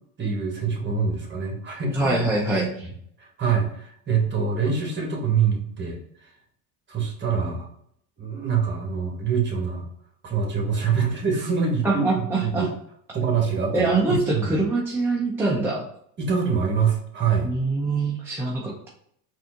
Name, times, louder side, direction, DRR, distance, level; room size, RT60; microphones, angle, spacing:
voice 1, 0.2-2.2 2.8-2.9 3.2-6.0 6.9-7.7 8.2-9.9 10.2-12.7 13.1-14.6 16.2-17.5, right 6 dB, 25° right, 1 dB, 1.4 m, -25 dB
voice 2, 1.9-2.9 11.8-12.7 13.7-15.8 17.4-18.9, right 3 dB, 5° right, -5 dB, 0.6 m, -24 dB
4.1 x 2.7 x 3.7 m, 0.67 s
supercardioid pair, 115°, 48 cm